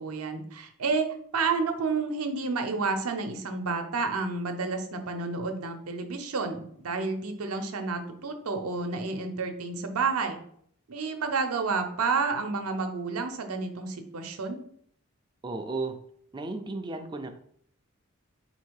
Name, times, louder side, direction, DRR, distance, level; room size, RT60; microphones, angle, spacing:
voice 1, 0.0-10.4 10.9-14.6, right 4 dB, 80° right, 6 dB, 0.7 m, -30 dB
voice 2, 15.4-16.0 16.3-17.3, right 3 dB, 20° right, 6 dB, 0.3 m, -34 dB
4.2 x 2.8 x 4.6 m, 0.64 s
head